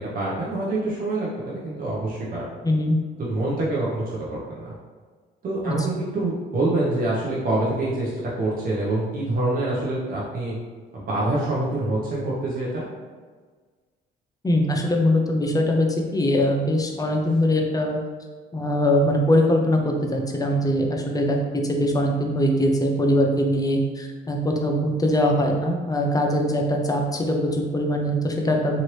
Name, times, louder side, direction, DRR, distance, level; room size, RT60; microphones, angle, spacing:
voice 1, 0.0-2.5 3.2-4.0 4.3-4.7 5.4-8.1 8.4-10.5 10.9-12.9, right 2 dB, 45° right, -6 dB, 0.8 m, -26 dB
voice 2, 2.6-3.0 5.7-5.9 14.4-18.0 18.5-28.8, equal, 20° left, 1 dB, 0.6 m, -22 dB
3.0 x 2.5 x 3.1 m, 1.5 s
supercardioid pair, 80°, 20 cm